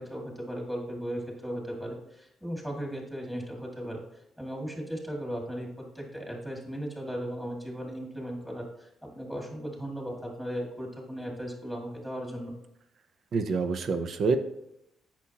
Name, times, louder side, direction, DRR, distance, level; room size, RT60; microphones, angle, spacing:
voice 1, 0.0-4.0 4.4-12.5, equal, 5° right, -1 dB, 2.2 m, -37 dB
voice 2, 13.3-14.4, right 4 dB, 60° right, 9 dB, 0.7 m, -27 dB
8.3 x 6.0 x 2.9 m, 0.82 s
cardioid pair, 90°, 0 cm